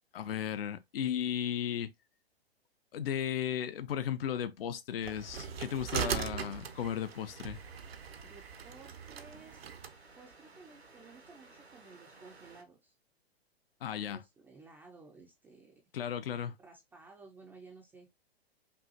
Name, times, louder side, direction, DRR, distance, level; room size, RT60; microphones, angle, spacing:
voice 1, 0.1-1.9 2.9-7.6 13.8-14.2 15.9-16.5, left 9 dB, 65° left, 0.5 m, -35 dB
sound 1, 5.0-9.9, right 8 dB, 70° right, 0.7 m, -40 dB
sound 2, 5.0-12.6, right 4 dB, 85° right, 1.1 m, -52 dB
voice 2, 8.2-9.6 10.2-13.0 14.1-15.8 16.6-18.1, right 4 dB, 5° right, 0.3 m, -55 dB
5.4 x 2.4 x 2.7 m
figure-of-eight pair, 110°, 31 cm